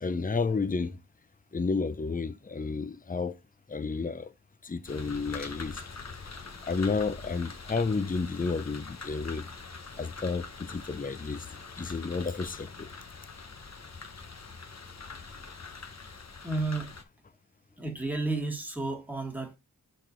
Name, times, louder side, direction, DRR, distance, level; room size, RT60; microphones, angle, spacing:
voice 1, 0.0-1.0 1.5-3.3 3.7-4.3 4.6-5.8 6.7-9.5 10.0-11.5 11.8-12.9, left 4 dB, 25° left, 0.7 m, -31 dB
sound 1, 4.9-17.0, left 4 dB, 45° left, 1.1 m, -44 dB
voice 2, 16.4-16.9 17.8-19.6, right 2 dB, 5° right, 2.0 m, -32 dB
5.9 x 4.2 x 4.5 m
wide cardioid pair, 65°, 37 cm